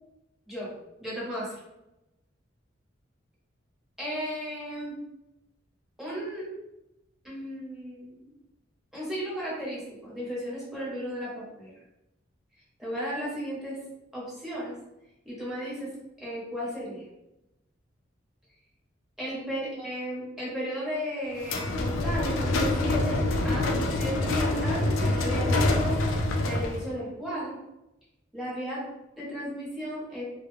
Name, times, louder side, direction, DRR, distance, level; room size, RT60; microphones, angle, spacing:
voice 1, 1.0-1.6 4.0-5.0 6.0-6.5 7.2-8.3 8.9-11.7 12.8-13.8 14.1-14.7 15.2-15.9 16.2-17.1 19.2-27.6 28.3-28.8 29.2-30.2, equal, ahead, -7 dB, 0.9 m, -35 dB
sound 1, 21.4-26.9, left 2 dB, 85° left, 0.4 m, -26 dB
2.3 x 2.1 x 3.3 m, 0.93 s
head